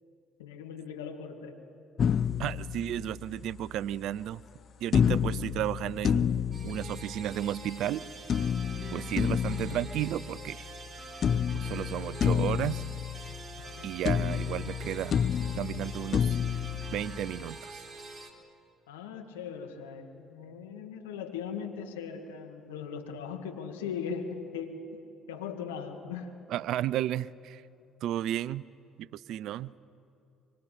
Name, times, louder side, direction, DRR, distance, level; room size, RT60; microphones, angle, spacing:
voice 1, 0.4-1.6 13.6-13.9 18.9-24.8 25.3-26.3, left 6 dB, 85° left, 4 dB, 2.2 m, -39 dB
sound 1, 2.0-3.5 4.9-7.5 8.3-10.9 11.2-13.8 14.0-17.5, left 8 dB, 50° left, 0.8 m, -30 dB
voice 2, 2.4-4.4 4.8-6.3 6.6-8.0 8.9-10.7 11.5-12.8 13.8-15.2 15.6-16.4 16.9-17.8 26.5-27.6 28.0-28.6 29.0-29.7, right 12 dB, 65° right, 21 dB, 0.5 m, -33 dB
sound 2, 6.5-18.3, right 3 dB, 30° right, 4.1 m, -45 dB
24.5 x 24.0 x 8.6 m, 2.6 s
hypercardioid pair, 55°, 0 cm